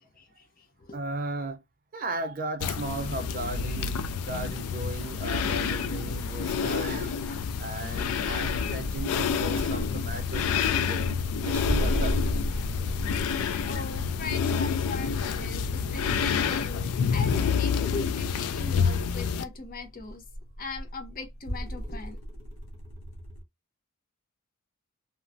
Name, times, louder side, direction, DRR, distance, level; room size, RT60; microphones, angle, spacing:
voice 1, 0.2-1.0 13.2-20.2 20.6-22.2, left 3 dB, 40° left, 0.6 m, -40 dB
voice 2, 0.9-1.6 1.9-4.0 4.3-11.1 11.4-12.2, right 2 dB, 40° right, 0.6 m, -36 dB
quiet respiration woman, 2.6-19.4, left 6 dB, 90° left, 0.4 m, -28 dB
sound 1, 6.8-23.4, equal, 65° left, 0.8 m, -37 dB
2.9 x 2.1 x 2.5 m
head